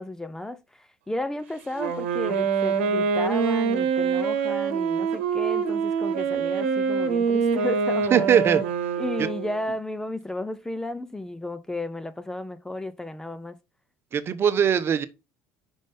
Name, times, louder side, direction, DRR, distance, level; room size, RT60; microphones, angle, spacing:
voice 1, 0.0-8.3 9.0-13.6, left 1 dB, 10° left, 0.5 m, -33 dB
Wind instrument woodwind instrument, 1.7-9.6, right 6 dB, 90° right, 1.0 m, -25 dB
voice 2, 8.1-8.6 14.1-15.0, right 8 dB, 40° right, 0.8 m, -20 dB
5.3 x 5.1 x 3.4 m
supercardioid pair, 85°, 6 cm